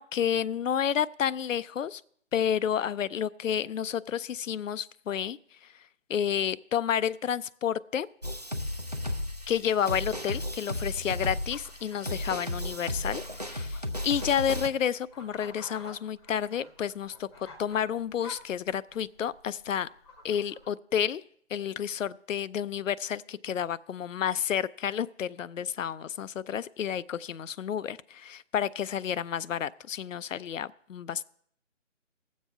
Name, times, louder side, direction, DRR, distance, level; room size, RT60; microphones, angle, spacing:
voice 1, 0.0-2.0 2.3-5.8 6.1-8.1 9.5-19.9 20.2-21.2 21.5-31.2, left 9 dB, 75° left, 17 dB, 0.5 m, -30 dB
sound 1, 8.2-14.7, left 1 dB, 35° right, 0.4 m, -34 dB
sound 2, 11.0-20.7, left 2 dB, 20° left, 0.8 m, -52 dB
20.0 x 7.4 x 3.4 m, 0.65 s
figure-of-eight pair, 160°, 39 cm